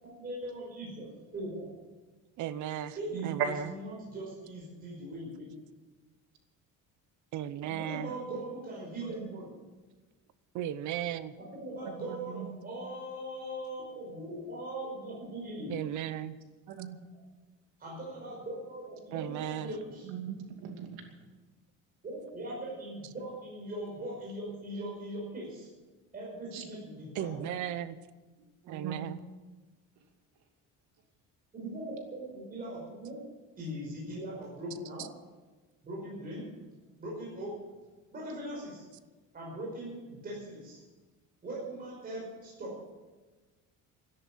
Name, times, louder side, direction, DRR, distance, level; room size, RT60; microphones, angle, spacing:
voice 1, 0.0-1.7 3.0-5.5 7.6-9.5 11.4-15.8 17.8-20.1 22.0-25.7 26.1-27.5 31.5-33.3 33.6-35.1 35.8-36.5 37.0-37.6 38.1-38.9 39.3-40.8 41.4-42.8, right 1 dB, 25° right, -4 dB, 5.4 m, -40 dB
voice 2, 2.4-3.0 3.2-3.7 7.3-8.1 10.5-11.3 15.7-16.4 19.1-19.7 27.1-27.9 28.7-29.2 35.0-35.1, right 11 dB, 60° right, 15 dB, 0.9 m, -36 dB
voice 3, 3.1-3.5 9.2-9.3 11.8-12.5 16.7-17.0 19.3-19.4 20.0-21.2 26.5-26.6 26.9-27.1 28.6-29.1, right 9 dB, 85° right, 4 dB, 2.7 m, -38 dB
13.0 x 11.0 x 8.7 m, 1.2 s
cardioid pair, 165°, 33 cm